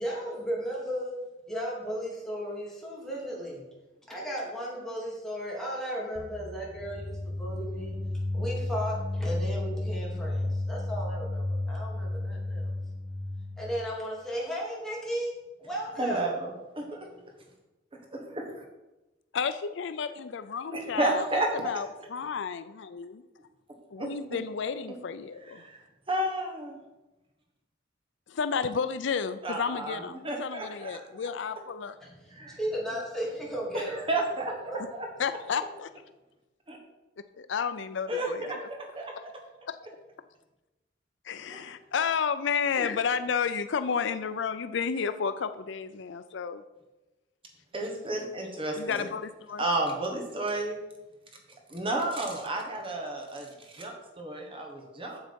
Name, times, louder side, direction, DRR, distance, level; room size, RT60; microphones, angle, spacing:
voice 1, 0.0-1.1 1.5-3.6 4.1-8.0 8.3-12.7 13.6-15.3 15.6-16.3 32.0-34.1 34.7-34.8, equal, 5° left, -5 dB, 2.8 m, -35 dB
sound 1, 6.2-13.9, left 2 dB, 40° left, 1.2 m, -33 dB
voice 2, 16.0-16.5 16.7-17.1 18.1-18.6 20.7-21.5 24.0-24.1 25.5-25.8 26.1-26.8 29.4-30.0 30.2-31.0 32.3-32.6 33.9-34.5 34.9-35.1 36.7-36.8 38.1-38.6 38.9-39.1 41.5-41.6 42.8-42.9 47.7-49.0 49.6-50.8 51.7-55.2, right 2 dB, 30° right, 1 dB, 1.3 m, -31 dB
voice 3, 19.3-23.2 23.9-25.7 28.3-32.0 35.2-35.9 37.3-38.7 41.2-46.6 48.8-49.6, left 6 dB, 70° left, 11 dB, 0.5 m, -32 dB
8.1 x 7.4 x 5.2 m, 1.1 s
head